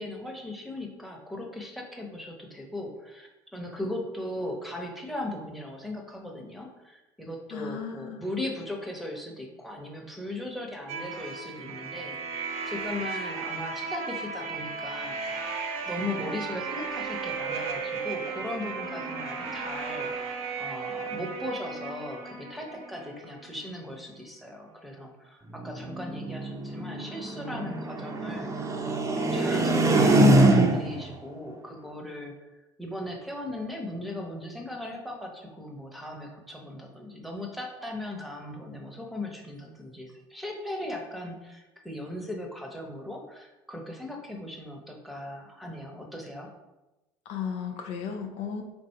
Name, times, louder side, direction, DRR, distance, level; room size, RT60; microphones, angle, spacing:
voice 1, 0.0-15.5 15.9-28.7 29.0-32.3 32.8-46.5, left 1 dB, ahead, 1 dB, 1.0 m, -38 dB
voice 2, 7.5-8.2 47.3-48.6, left 7 dB, 60° left, 3 dB, 0.5 m, -35 dB
sound 1, 10.9-23.6, right 5 dB, 60° right, 0.7 m, -35 dB
sound 2, 25.6-31.1, right 1 dB, 25° right, 0.6 m, -23 dB
3.8 x 2.6 x 4.4 m, 1.0 s
hypercardioid pair, 65°, 12 cm